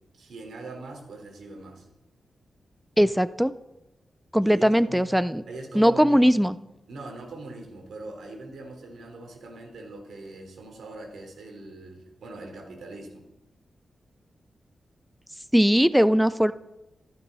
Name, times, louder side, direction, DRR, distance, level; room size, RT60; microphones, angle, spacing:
voice 1, 0.1-1.9 4.4-5.1 5.5-6.4 6.9-13.3, right 2 dB, 90° right, 3 dB, 3.9 m, -41 dB
voice 2, 3.0-3.5 4.3-5.4 5.7-6.5 15.5-16.5, equal, ahead, 14 dB, 0.5 m, -20 dB
15.0 x 14.5 x 5.5 m, 0.91 s
wide cardioid pair, 105°, 0 cm